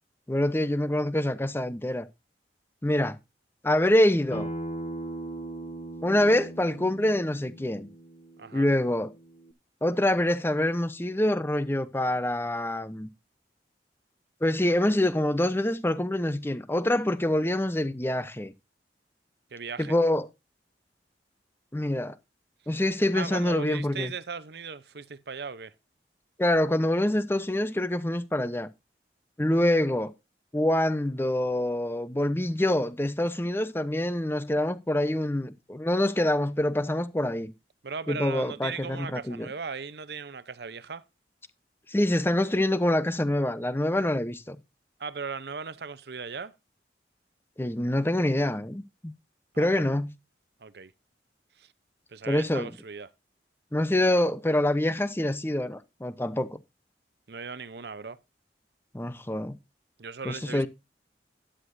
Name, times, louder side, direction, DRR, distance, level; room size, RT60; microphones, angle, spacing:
voice 1, 0.3-2.1 2.8-3.2 3.6-4.5 6.0-7.9 8.5-9.1 9.8-13.1 14.4-18.5 19.8-20.3 21.7-22.2 22.7-24.1 26.4-28.7 29.4-30.1 30.5-37.5 38.1-39.5 41.9-44.6 47.6-49.1 49.6-50.1 52.3-52.7 53.7-56.6 58.9-59.6 60.2-60.7, left 1 dB, 15° left, 0.7 m, -26 dB
Acoustic guitar, 4.3-9.5, right 1 dB, 35° left, 1.5 m, -39 dB
voice 2, 19.5-19.9 23.1-25.7 37.8-41.0 45.0-46.5 49.5-49.9 50.6-50.9 51.6-51.7 52.1-53.1 57.3-58.2 60.0-60.7, right 5 dB, 65° right, 0.7 m, -38 dB
12.5 x 10.0 x 2.6 m
head